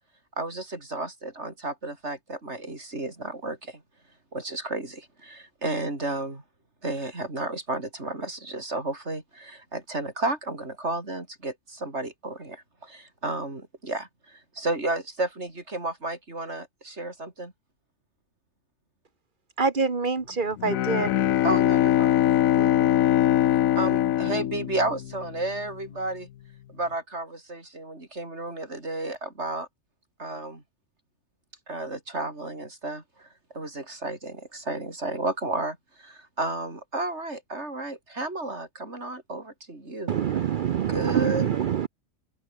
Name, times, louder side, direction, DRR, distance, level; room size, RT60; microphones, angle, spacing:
voice 1, 0.4-3.8 4.3-6.4 6.8-17.5 21.4-22.7 23.8-26.3 26.7-29.7 30.2-30.6 31.7-33.3 33.5-40.2 40.9-41.6, right 2 dB, 55° right, 5.1 m, -32 dB
voice 2, 19.6-21.2 22.6-22.9, right 4 dB, 35° right, 2.1 m, -27 dB
Bowed string instrument, 20.6-25.5, left 12 dB, 85° left, 1.1 m, -22 dB
voice 3, 40.1-41.9, right 10 dB, 70° right, 0.4 m, -25 dB
omnidirectional pair, 1.4 m